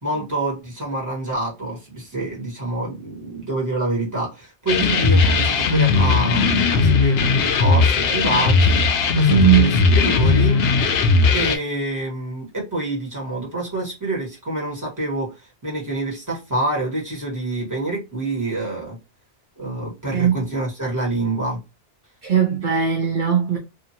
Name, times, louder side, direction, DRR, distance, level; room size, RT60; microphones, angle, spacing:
voice 1, 0.0-10.6 11.3-19.0 19.6-21.6, right 2 dB, 15° right, 1.4 m, -27 dB
sound 1, 4.7-11.6, left 4 dB, 65° left, 0.8 m, -17 dB
voice 2, 9.3-9.7 20.1-20.3 22.2-23.6, right 9 dB, 55° right, 0.6 m, -18 dB
2.6 x 2.6 x 2.7 m
omnidirectional pair, 1.2 m